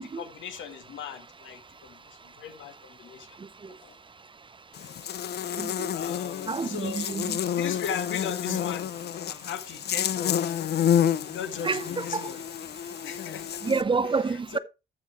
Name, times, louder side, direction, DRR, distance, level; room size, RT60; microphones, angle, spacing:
voice 1, 0.0-3.4 3.7-4.0 5.9-7.2 7.6-8.9 9.3-10.5 11.1-12.4 13.0-13.6 14.5-14.6, left 8 dB, 75° left, 1.6 m, -38 dB
Buzz, 4.7-13.8, left 9 dB, 55° left, 0.6 m, -29 dB
voice 2, 5.6-5.9 6.5-7.4 8.4-8.6 11.6-12.2 13.6-14.6, right 4 dB, 25° right, 0.6 m, -28 dB
14.0 x 4.7 x 4.3 m
cardioid pair, 90°, 20 cm